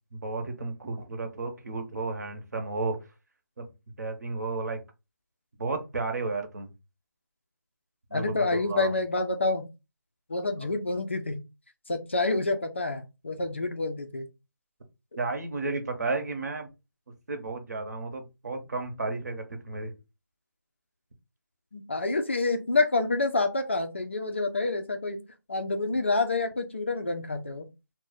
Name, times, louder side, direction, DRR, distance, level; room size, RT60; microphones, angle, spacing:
voice 1, 0.1-3.0 3.6-3.7 4.0-4.8 5.6-6.7 8.1-8.9 15.2-16.7 17.3-19.9, right 3 dB, 55° right, 3 dB, 0.9 m, -33 dB
voice 2, 8.1-9.7 10.3-11.4 11.9-14.3 21.7-25.2 25.5-27.7, left 3 dB, 35° left, 6 dB, 0.3 m, -28 dB
2.4 x 2.1 x 3.9 m, 0.26 s
figure-of-eight pair, 165°, 11 cm